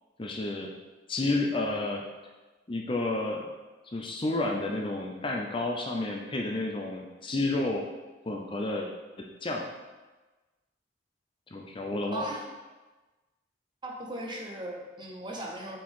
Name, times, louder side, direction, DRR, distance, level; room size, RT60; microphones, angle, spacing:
voice 1, 0.2-0.7 1.1-2.1 2.7-3.5 3.9-7.8 8.3-8.9 9.2-9.7 11.5-12.3, left 2 dB, 25° left, 1 dB, 0.5 m, -30 dB
voice 2, 12.0-12.4 13.8-15.8, right 1 dB, 25° right, 0 dB, 0.9 m, -38 dB
7.4 x 4.3 x 3.7 m, 1.2 s
head